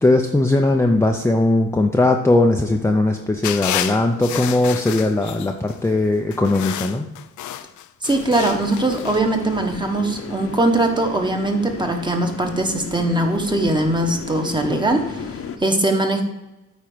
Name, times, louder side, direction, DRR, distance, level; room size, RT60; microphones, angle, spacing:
voice 1, 0.0-7.1, left 2 dB, 10° left, 2 dB, 0.7 m, -19 dB
sound 1, 3.4-5.8 6.3-9.2, left 12 dB, 75° left, 0.5 m, -30 dB
voice 2, 8.0-16.2, right 2 dB, 15° right, 4 dB, 1.3 m, -21 dB
sound 2, 8.1-15.6, left 6 dB, 50° left, 1.0 m, -34 dB
8.7 x 4.5 x 6.2 m, 0.99 s
cardioid pair, 90°, 30 cm